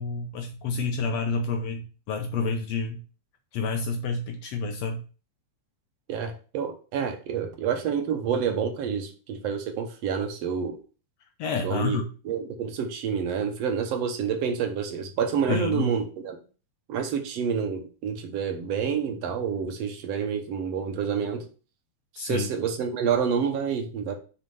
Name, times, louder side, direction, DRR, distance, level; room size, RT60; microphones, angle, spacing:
voice 1, 0.0-3.0 3.5-5.0 11.4-12.1 15.5-15.9 22.2-22.5, left 4 dB, 75° left, 5 dB, 1.6 m, -29 dB
voice 2, 6.1-10.8 11.6-16.4 16.9-21.5 22.2-24.1, right 7 dB, 65° right, 6 dB, 1.9 m, -28 dB
6.3 x 4.3 x 5.3 m, 0.37 s
omnidirectional pair, 3.4 m